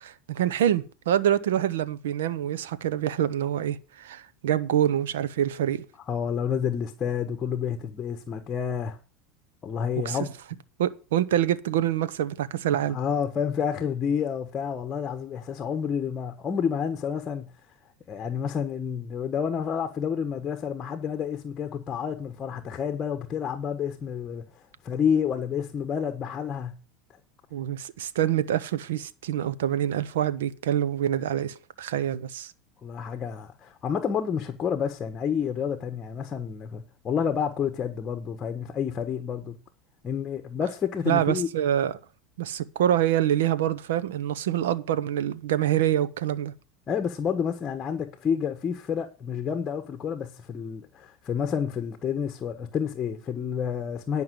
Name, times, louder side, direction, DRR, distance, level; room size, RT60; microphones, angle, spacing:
voice 1, 0.0-5.8 10.0-10.2 10.8-13.0 27.5-32.5 41.1-41.9 42.4-46.5, right 11 dB, 90° right, 0.8 m, -26 dB
voice 2, 6.1-9.0 9.6-10.3 12.9-17.5 18.1-24.5 24.8-26.7 32.8-39.6 40.0-41.5 46.9-54.2, left 7 dB, 30° left, 1.3 m, -29 dB
10.5 x 5.6 x 7.7 m
supercardioid pair, 115°, 0 cm